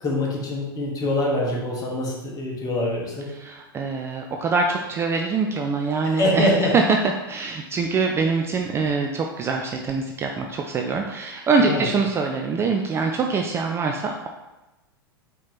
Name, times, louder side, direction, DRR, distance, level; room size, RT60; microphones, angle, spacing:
voice 1, 0.0-3.3 6.0-6.7 11.6-11.8, left 1 dB, 30° left, -2 dB, 1.3 m, -24 dB
voice 2, 3.3-7.0 7.3-14.3, right 4 dB, 20° right, 2 dB, 0.3 m, -24 dB
4.5 x 2.9 x 3.6 m, 1.0 s
figure-of-eight pair, 90°, 13 cm